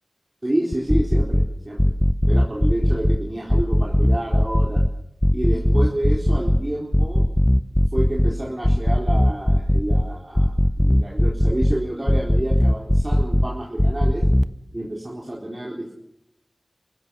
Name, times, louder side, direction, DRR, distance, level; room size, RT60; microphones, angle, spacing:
voice 1, 0.4-1.9 2.2-4.8 5.3-7.2 7.9-14.3 14.7-15.9, right 1 dB, 35° right, -3 dB, 4.3 m, -29 dB
sound 1, 0.7-1.5 1.8-3.2 3.5-4.9 5.2-6.6 6.9-8.3 8.6-10.0 10.3-11.7 12.1-13.5 13.8-14.4, equal, 15° left, 0.9 m, -18 dB
29.5 x 16.0 x 6.6 m, 0.77 s
wide cardioid pair, 45°, 0 cm